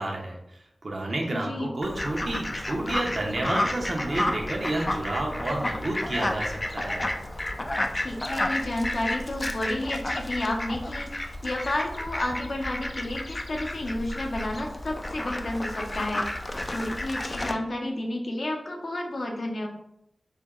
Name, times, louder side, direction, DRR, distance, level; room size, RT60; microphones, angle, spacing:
voice 1, 0.0-7.1, right 1 dB, 55° right, 0 dB, 0.8 m, -30 dB
voice 2, 1.3-1.7 7.9-16.3 16.7-19.7, left 1 dB, 65° left, 1 dB, 0.7 m, -31 dB
Fowl, 1.8-17.5, left 1 dB, 30° left, 0.4 m, -31 dB
4.4 x 2.2 x 3.7 m, 0.79 s
wide cardioid pair, 65°, 0 cm